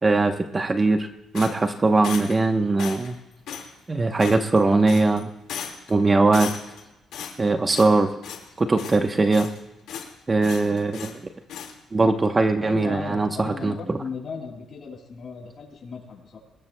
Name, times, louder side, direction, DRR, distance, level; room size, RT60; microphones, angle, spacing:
voice 1, 0.0-1.1 1.3-3.2 3.9-5.3 5.9-6.5 7.4-8.1 8.6-9.5 10.3-11.2 11.9-13.7, right 3 dB, 25° right, 6 dB, 0.9 m, -20 dB
sound 1, 1.3-2.5 2.8-3.2 3.5-3.7 4.2-4.6 4.9-5.2 5.5-5.9 6.3-6.8 7.1-8.0 8.2-8.5 8.8-9.6 9.9-10.1 10.4-11.2 11.5-11.7, left 8 dB, 85° left, 2.0 m, -36 dB
voice 2, 12.6-16.4, left 5 dB, 50° left, -2 dB, 6.5 m, -36 dB
21.0 x 20.5 x 2.3 m, 0.99 s
cardioid pair, 90°, 0 cm